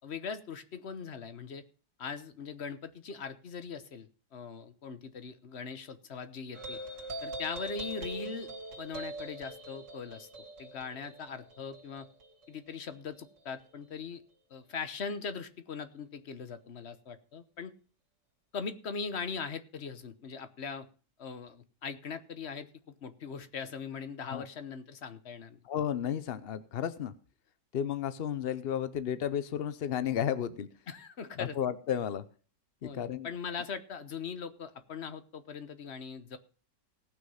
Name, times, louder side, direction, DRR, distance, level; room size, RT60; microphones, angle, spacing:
voice 1, 0.0-1.6 2.0-6.8 7.2-8.5 8.8-10.3 10.6-12.1 12.5-14.2 14.5-17.7 18.5-20.9 21.2-25.6 30.9-31.6 32.8-36.4, left 5 dB, 45° left, 11 dB, 1.1 m, -40 dB
sound 1, 6.5-13.4, right 1 dB, 70° right, 3.1 m, -42 dB
voice 2, 25.6-27.1 27.7-30.7 31.4-32.2 32.8-33.3, left 9 dB, 75° left, 14 dB, 0.5 m, -33 dB
18.0 x 6.3 x 5.6 m, 0.38 s
omnidirectional pair, 1.9 m